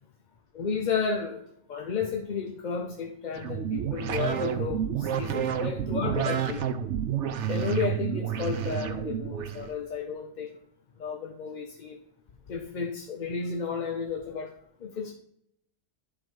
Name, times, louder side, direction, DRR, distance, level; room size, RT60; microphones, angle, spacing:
voice 1, 0.5-1.4 1.7-6.7 7.5-10.6 11.0-12.0 12.5-14.5 14.8-15.1, left 5 dB, 45° left, 2 dB, 0.8 m, -32 dB
sound 1, 3.3-9.7, right 9 dB, 75° right, 1.0 m, -30 dB
11.0 x 3.9 x 5.3 m, 0.74 s
omnidirectional pair, 1.3 m